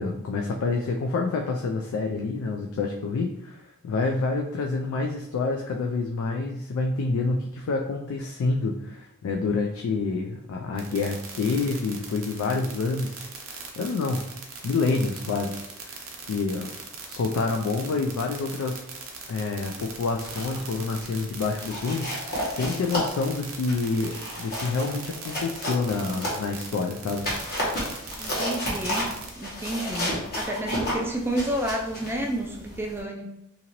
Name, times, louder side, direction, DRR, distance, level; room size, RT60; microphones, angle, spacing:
voice 1, 0.0-14.2 14.6-16.0 16.3-16.7 17.1-18.8 19.3-27.3, left 3 dB, 75° left, 2 dB, 0.3 m, -28 dB
sound 1, 10.8-29.3, right 6 dB, 70° right, 0.6 m, -40 dB
sound 2, 20.0-20.6 20.9-21.2 21.6-26.7 27.1-33.0, left 1 dB, 50° left, 1.0 m, -32 dB
voice 2, 28.2-33.3, right 1 dB, 10° right, 0 dB, 0.3 m, -30 dB
2.8 x 2.5 x 2.9 m, 0.83 s
head